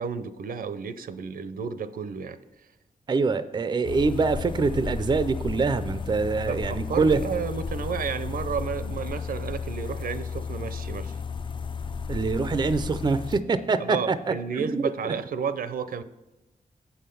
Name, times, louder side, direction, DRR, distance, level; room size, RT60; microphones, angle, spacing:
voice 1, 0.0-2.4 6.5-11.2 13.8-16.0, right 6 dB, 75° right, 12 dB, 0.6 m, -32 dB
voice 2, 3.1-7.2 12.1-14.2 14.6-14.8, right 4 dB, 30° right, 12 dB, 0.4 m, -24 dB
sound 1, 3.8-13.4, left 5 dB, 35° left, 0.4 m, -33 dB
8.0 x 5.7 x 6.7 m, 1.0 s
wide cardioid pair, 125°, 15 cm